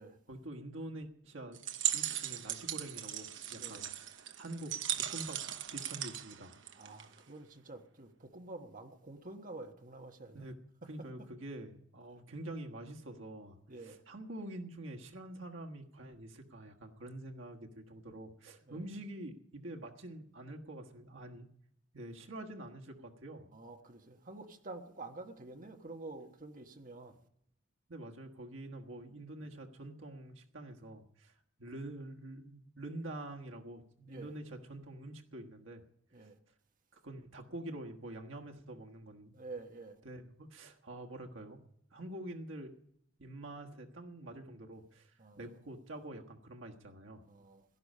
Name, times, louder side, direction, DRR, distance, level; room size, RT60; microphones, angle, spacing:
voice 1, 0.3-1.6 1.9-5.4 5.7-6.6 10.3-10.6 10.8-21.5 21.9-23.5 27.9-35.8 36.2-36.3 36.9-39.3 40.0-41.6 41.9-42.8 43.2-47.2, right 1 dB, 90° right, 1.4 m, -46 dB
sound 1, 1.5-7.2, right 11 dB, 70° right, 0.9 m, -38 dB
voice 2, 6.7-10.5 13.7-14.0 18.6-18.9 23.5-27.2 34.1-34.3 36.1-36.4 39.3-40.0 45.2-45.6 47.3-47.6, right 2 dB, 45° right, 1.3 m, -48 dB
17.0 x 12.0 x 5.5 m
head